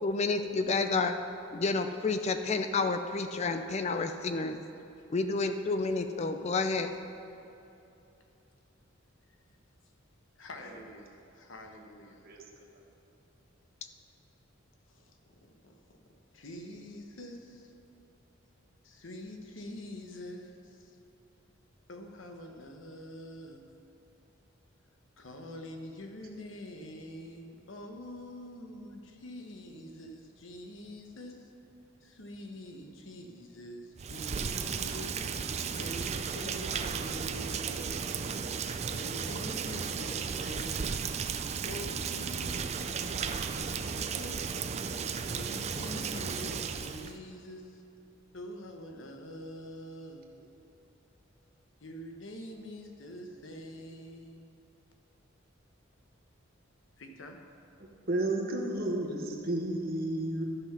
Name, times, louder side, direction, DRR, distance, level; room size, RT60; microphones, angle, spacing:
voice 1, 0.0-1.1 1.5-4.6 5.1-6.9, left 3 dB, 35° left, 8 dB, 0.4 m, -30 dB
voice 2, 10.4-12.2 14.9-15.3 15.6-15.9 16.3-17.7 18.8-21.0 21.9-23.6 25.2-31.5 32.0-35.2 35.8-38.0 38.9-41.1 41.7-44.6 45.2-47.8 48.3-50.3 51.8-54.5 57.0-57.4, left 1 dB, 70° left, 3 dB, 1.1 m, -45 dB
Rain, 34.0-47.1, right 6 dB, 35° right, 0.4 m, -34 dB
voice 3, 58.1-60.4, right 1 dB, 50° right, 1 dB, 1.3 m, -31 dB
12.5 x 5.9 x 5.7 m, 2.8 s
head